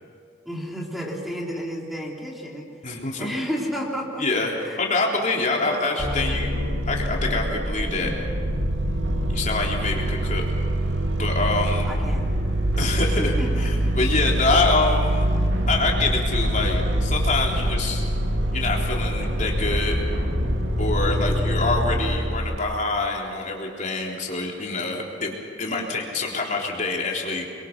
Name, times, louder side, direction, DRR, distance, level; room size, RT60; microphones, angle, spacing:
voice 1, 0.5-2.7 3.2-4.3 4.6-6.4 11.9-12.3 12.9-13.9 21.1-21.5, equal, ahead, -2 dB, 3.7 m, -33 dB
voice 2, 2.8-3.3 4.2-8.1 9.3-10.4 11.1-11.9 12.8-15.2 15.7-18.0 18.5-20.0 20.8-27.5, left 3 dB, 45° left, -1 dB, 3.8 m, -26 dB
sound 1, 6.0-22.6, right 1 dB, 90° right, 2.3 m, -24 dB
29.0 x 23.0 x 6.1 m, 2.2 s
head